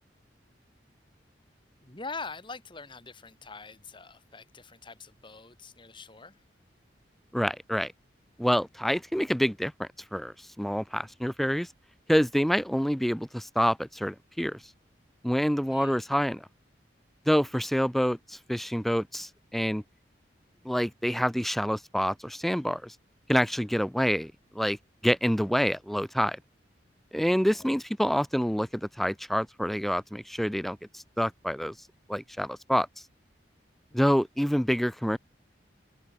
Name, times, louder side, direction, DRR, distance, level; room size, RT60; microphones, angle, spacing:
voice 1, 1.8-6.4 15.7-16.0 27.4-27.7 33.9-34.2, left 4 dB, 25° left, 2.5 m, -44 dB
voice 2, 7.3-7.9 8.4-11.7 12.1-14.6 15.2-16.5 17.3-19.8 20.6-22.9 23.3-24.8 25.0-26.4 27.1-31.7 32.1-32.9 33.9-35.2, equal, ahead, 0.5 m, -27 dB
head